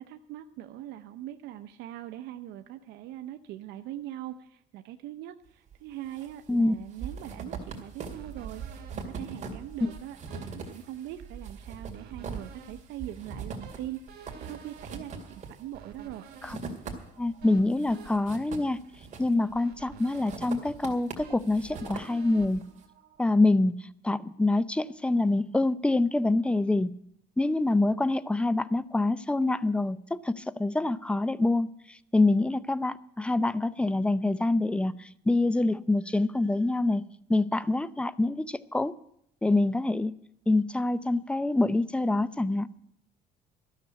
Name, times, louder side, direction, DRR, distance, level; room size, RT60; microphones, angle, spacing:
voice 1, 0.0-16.3, right 13 dB, 85° right, 8 dB, 0.6 m, -42 dB
sound 1, 5.7-6.3 6.6-17.3 17.7-19.5 20.0-22.7, right 5 dB, 45° right, 2.2 m, -41 dB
sound 2, 8.1-23.4, right 6 dB, 65° right, 1.9 m, -52 dB
voice 2, 17.2-18.8 19.2-22.6 23.2-23.8 24.0-26.9 27.4-37.0 37.3-38.9 39.4-40.1 40.5-42.7, left 2 dB, 5° left, 17 dB, 0.5 m, -26 dB
13.0 x 6.7 x 9.7 m, 0.74 s
cardioid pair, 110°, 17 cm